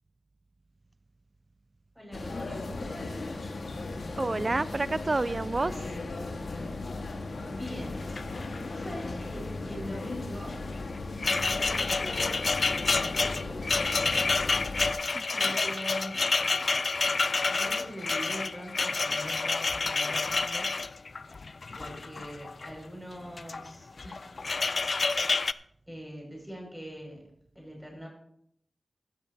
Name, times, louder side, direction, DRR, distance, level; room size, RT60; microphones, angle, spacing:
voice 1, 1.9-3.1 7.5-8.2 8.7-10.6 11.1-14.4 15.4-16.2 17.5-20.8 21.7-24.2 25.9-27.2 27.5-28.1, equal, ahead, 6.0 m, -43 dB
sound 1, 2.1-14.9, left 3 dB, 85° left, 1.6 m, -37 dB
voice 2, 4.2-5.8 15.1-15.5, right 3 dB, 40° right, 0.4 m, -29 dB
sound 2, 7.7-7.8 8.0-8.9 9.1-9.4 10.5-22.7 23.3-23.7 24.0-25.5, left 4 dB, 60° left, 0.4 m, -29 dB
15.5 x 13.0 x 2.8 m
wide cardioid pair, 100°, 0 cm